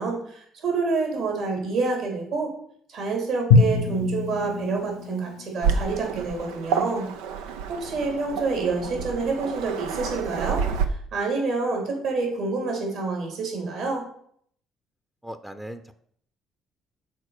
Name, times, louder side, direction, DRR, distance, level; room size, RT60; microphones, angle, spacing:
voice 1, 0.0-2.5 2.9-7.1 7.7-14.0, right 3 dB, 70° right, 1 dB, 3.2 m, -28 dB
Drum, 3.5-6.5, left 4 dB, 85° left, 0.7 m, -24 dB
Waves surf, 5.6-10.8, right 6 dB, 90° right, 0.6 m, -29 dB
voice 2, 15.2-15.9, equal, 5° right, 9 dB, 0.7 m, -38 dB
6.7 x 4.2 x 6.6 m, 0.64 s
supercardioid pair, 65°, 0 cm